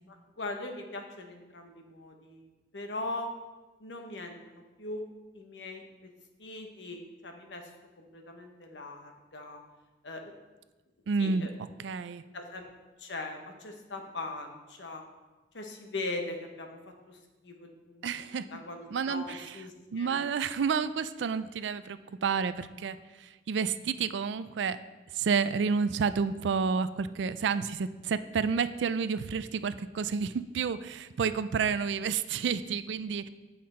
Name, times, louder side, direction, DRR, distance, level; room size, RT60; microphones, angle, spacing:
voice 1, 0.1-2.4 2.7-3.3 3.8-5.0 5.3-6.1 6.4-7.6 8.0-9.6 10.0-10.3 11.2-11.5 12.3-12.6 13.0-15.0 15.5-16.8 17.1-18.1 18.5-20.2, left 2 dB, 85° left, 4 dB, 1.0 m, -40 dB
voice 2, 11.1-11.5 11.8-12.2 18.0-18.5 18.9-19.6 19.9-24.8 25.1-33.3, right 5 dB, 80° right, 13 dB, 0.4 m, -30 dB
8.4 x 5.7 x 4.3 m, 1.2 s
head